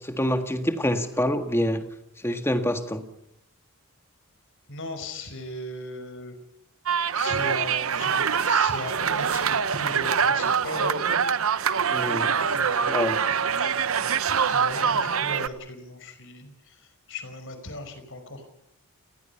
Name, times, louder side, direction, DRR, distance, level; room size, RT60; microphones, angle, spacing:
voice 1, 0.0-1.8 2.2-3.0 11.9-12.4 12.9-13.2, equal, 10° left, 7 dB, 1.7 m, -26 dB
voice 2, 4.7-6.4 7.1-11.0 12.5-13.3 14.2-18.4, left 2 dB, 60° left, 8 dB, 5.1 m, -38 dB
sound 1, 6.9-15.5, right 6 dB, 65° right, 0.9 m, -24 dB
29.5 x 19.5 x 5.7 m, 0.77 s
head